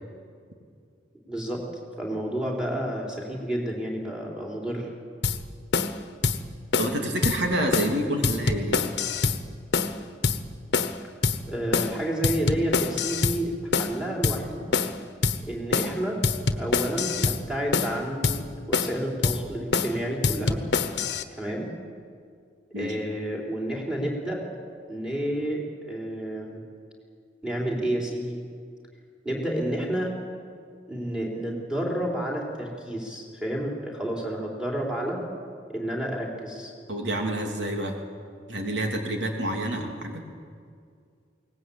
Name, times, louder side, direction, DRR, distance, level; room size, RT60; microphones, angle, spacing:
voice 1, 1.3-1.6 2.0-4.9 11.5-13.5 13.8-14.7 15.5-16.2 16.6-20.6 21.4-21.7 22.7-24.4 24.9-26.6 27.4-28.4 29.2-30.1 30.9-35.2 35.7-36.7, right 1 dB, 5° right, -2 dB, 4.0 m, -30 dB
sound 1, 5.2-5.4 5.7-5.9 6.2-6.4 6.7-7.0 7.2-7.4 7.7-7.9 8.2-9.4 9.7-10.0 10.2-10.4 10.7-11.0 11.2-11.4 11.7-12.0 12.2-13.4 13.7-13.9 14.2-14.4 14.7-15.0 15.2-15.4 15.7-16.0 16.2-17.4 17.7-17.9 18.2-18.4 18.7-19.0 19.2-19.4 19.7-19.9 20.2-21.2, left 4 dB, 70° left, 1.2 m, -25 dB
voice 2, 6.8-8.9 22.7-23.0 36.9-38.0 38.5-40.2, right 1 dB, 75° right, 2 dB, 3.0 m, -28 dB
22.5 x 19.0 x 8.7 m, 2.2 s
head